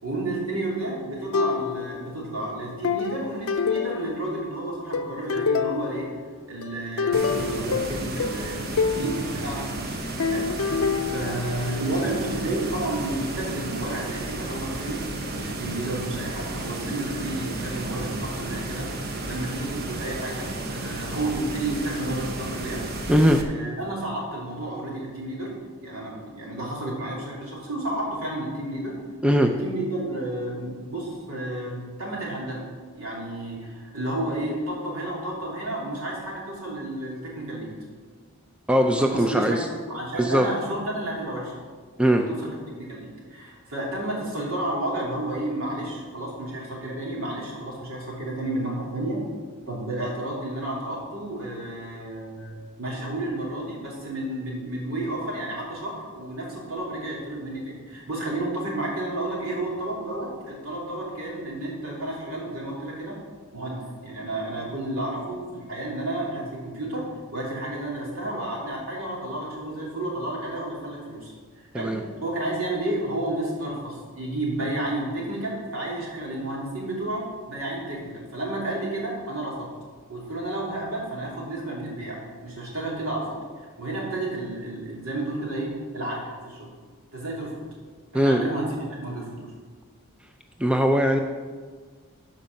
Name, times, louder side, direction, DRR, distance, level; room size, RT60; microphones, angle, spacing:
voice 1, 0.0-6.1 6.5-9.9 10.3-10.4 11.1-15.0 15.3-23.1 23.4-25.5 25.8-28.9 29.4-32.6 32.9-37.7 38.9-41.5 42.0-49.2 49.7-63.2 63.5-67.0 67.3-79.7 80.1-86.7 87.1-87.6 88.1-89.5, right 1 dB, 75° right, -4 dB, 3.1 m, -31 dB
sound 1, 1.3-2.1 2.8-4.5 4.9-6.1 6.6-9.1 10.2-12.0, left 5 dB, 75° left, 0.5 m, -26 dB
sound 2, 7.1-23.4, right 2 dB, 45° right, 0.9 m, -33 dB
voice 2, 23.1-23.4 29.2-29.5 38.7-39.6 40.2-40.5 42.0-42.2 71.7-72.0 88.1-88.4 90.6-91.2, equal, 5° right, 4 dB, 0.4 m, -20 dB
12.5 x 5.2 x 5.3 m, 1.5 s
head